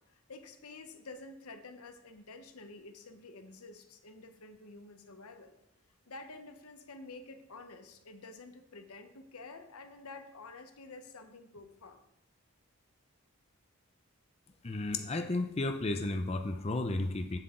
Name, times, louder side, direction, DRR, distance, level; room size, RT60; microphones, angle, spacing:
voice 1, 0.1-5.6 6.1-12.0, left 3 dB, 90° left, 7 dB, 1.0 m, -50 dB
voice 2, 14.6-17.4, left 2 dB, 30° left, 5 dB, 0.5 m, -33 dB
8.0 x 7.7 x 3.8 m, 0.81 s
head